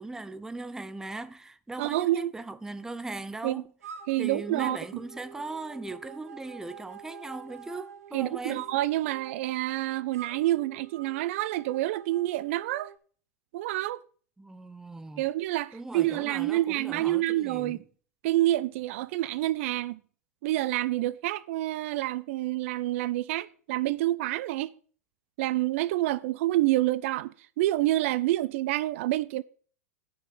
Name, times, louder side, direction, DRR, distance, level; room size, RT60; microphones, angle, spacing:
voice 1, 0.0-3.7 4.2-8.7 14.4-15.2 15.7-17.8, right 2 dB, 5° right, 0.6 m, -39 dB
voice 2, 1.8-2.3 3.4-3.6 4.1-4.8 8.1-12.9 13.5-14.0 15.2-17.8 18.2-20.0 20.4-24.7 25.4-29.4, right 16 dB, 55° right, 0.6 m, -28 dB
sound 1, 3.8-13.0, right 7 dB, 70° right, 2.1 m, -48 dB
9.6 x 6.5 x 7.3 m
hypercardioid pair, 100°, 9 cm